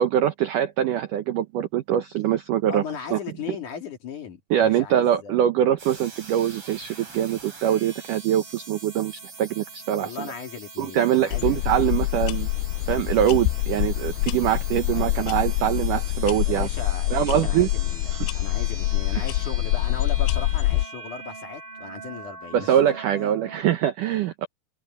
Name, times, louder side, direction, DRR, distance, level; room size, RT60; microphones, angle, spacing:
voice 1, 0.0-2.8 3.1-3.2 4.5-10.3 10.8-12.5 12.9-16.7 17.1-17.7 19.1-19.2 22.5-24.5, right 11 dB, 85° right, 1.8 m, -23 dB
voice 2, 2.7-5.4 10.0-12.0 14.9-15.4 16.4-22.9 23.1-23.3, left 6 dB, 50° left, 3.8 m, -37 dB
sound 1, 5.8-23.6, right 4 dB, 30° right, 5.5 m, -42 dB
sound 2, 11.3-20.9, left 18 dB, 85° left, 2.3 m, -25 dB
omnidirectional pair, 5.2 m